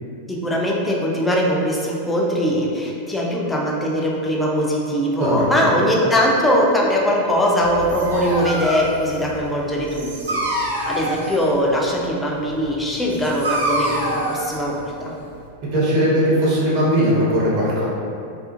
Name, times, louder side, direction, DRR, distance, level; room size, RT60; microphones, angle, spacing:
voice 1, 0.3-10.4 10.9-15.1, equal, 10° left, -3 dB, 0.4 m, -21 dB
Dog, 7.6-15.5, right 1 dB, 70° right, 0.4 m, -27 dB
voice 2, 15.7-17.9, equal, 45° right, -7 dB, 0.8 m, -18 dB
2.4 x 2.3 x 2.5 m, 2.5 s
figure-of-eight pair, 90°, 0 cm